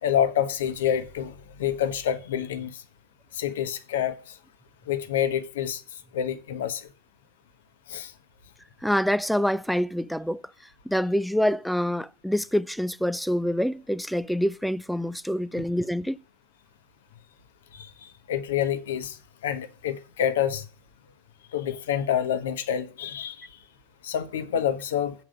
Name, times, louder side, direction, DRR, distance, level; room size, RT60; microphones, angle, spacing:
voice 1, 0.0-2.8 3.3-4.4 4.9-5.8 6.1-6.9 7.9-8.1 15.6-15.7 17.7-20.7 21.5-23.6 24.0-25.1, left 9 dB, 60° left, 1.1 m, -28 dB
voice 2, 8.8-10.4 10.9-16.2, equal, ahead, 0.4 m, -26 dB
7.3 x 5.0 x 6.3 m
figure-of-eight pair, 90°, 0 cm